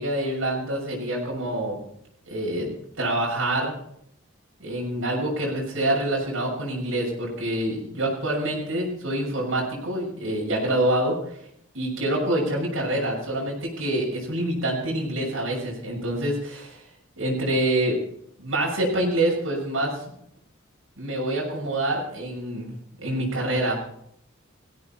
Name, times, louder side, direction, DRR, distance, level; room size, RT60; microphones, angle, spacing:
voice 1, 0.0-1.8 2.3-3.8 4.6-11.4 11.7-16.8 17.2-18.0 18.4-20.0 21.0-23.8, right 1 dB, 80° right, -3 dB, 6.6 m, -26 dB
18.5 x 15.5 x 4.5 m, 0.71 s
head